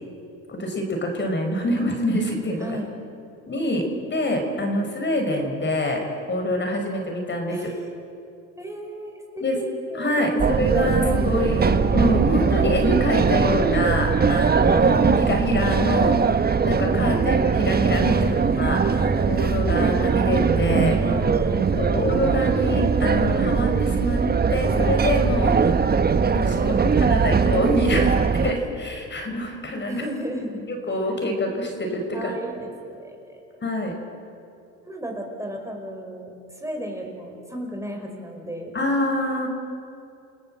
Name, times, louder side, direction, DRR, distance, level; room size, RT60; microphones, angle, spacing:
voice 1, 0.5-2.8 3.5-7.8 9.4-9.6 9.9-16.2 16.7-18.3 18.6-21.0 21.7-24.2 24.5-25.6 26.3-28.1 28.4-30.0 30.7-32.3 33.6-33.9 38.7-39.5, left 1 dB, 30° left, 3 dB, 5.3 m, -25 dB
voice 2, 7.5-7.9 8.6-10.3 14.9-15.2 16.0-16.4 18.1-18.4 20.8-21.8 26.5-27.2 29.9-30.7 32.1-33.4 34.8-38.7, equal, 10° right, 2 dB, 5.1 m, -33 dB
sound 1, 10.4-28.5, right 5 dB, 25° right, 1.2 m, -20 dB
29.5 x 17.5 x 7.7 m, 2.7 s
supercardioid pair, 85°, 35 cm